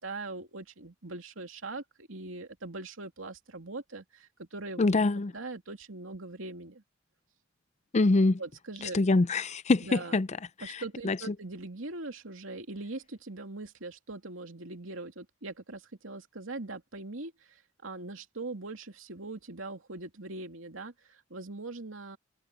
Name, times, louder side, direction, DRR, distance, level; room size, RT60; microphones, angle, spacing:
voice 1, 0.0-4.9 5.3-6.8 8.4-9.0 9.8-10.1 10.6-22.2, right 2 dB, 85° right, 2.8 m, -41 dB
voice 2, 4.8-5.3 7.9-8.4 8.8-10.3 10.6-11.3, left 3 dB, 35° left, 0.5 m, -25 dB
head